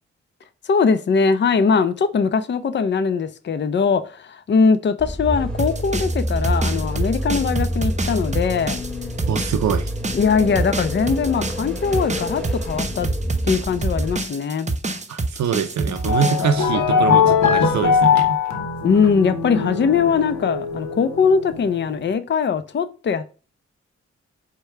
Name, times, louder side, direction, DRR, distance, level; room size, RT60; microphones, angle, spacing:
voice 1, 0.7-8.8 10.1-13.1 13.4-14.7 18.8-23.2, left 5 dB, 40° left, 0.5 m, -21 dB
sound 1, 5.0-14.2, equal, ahead, 1.5 m, -27 dB
sound 2, 5.6-16.5, right 2 dB, 25° right, 0.7 m, -26 dB
voice 2, 9.3-9.9 15.1-18.4, right 7 dB, 70° right, 0.5 m, -24 dB
sound 3, 15.9-21.8, left 6 dB, 80° left, 0.8 m, -20 dB
4.6 x 2.2 x 4.5 m
supercardioid pair, 45°, 30 cm